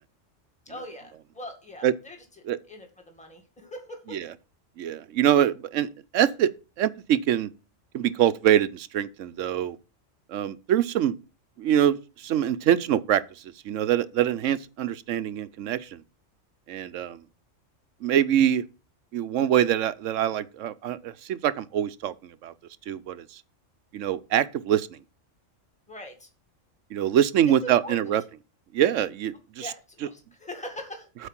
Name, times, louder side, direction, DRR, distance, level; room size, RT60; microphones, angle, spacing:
voice 1, 0.7-4.2 25.9-26.3 27.5-28.1 29.6-31.1, left 1 dB, 5° left, 1.9 m, -41 dB
voice 2, 4.8-6.5 6.8-7.5 7.9-9.8 10.3-11.2 11.6-16.0 16.7-17.2 18.0-18.6 19.1-22.5 22.9-23.4 23.9-25.0 26.9-28.2 28.7-29.7, right 10 dB, 80° right, 1.0 m, -24 dB
8.3 x 5.0 x 7.4 m
omnidirectional pair, 1.3 m